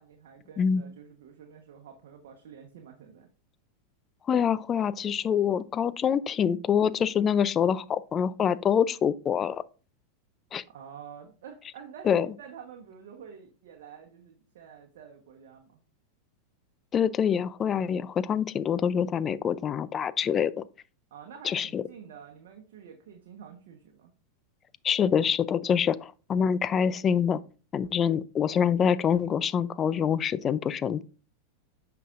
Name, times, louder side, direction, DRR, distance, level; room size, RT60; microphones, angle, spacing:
voice 1, 0.0-3.3 10.7-15.8 21.1-24.1, right 7 dB, 70° right, 1.1 m, -48 dB
voice 2, 4.3-9.6 10.5-10.6 12.1-12.3 16.9-20.6 21.4-21.8 24.8-27.4 27.7-31.0, left 7 dB, 30° left, 0.4 m, -25 dB
9.2 x 5.7 x 2.5 m
hypercardioid pair, 100°, 0 cm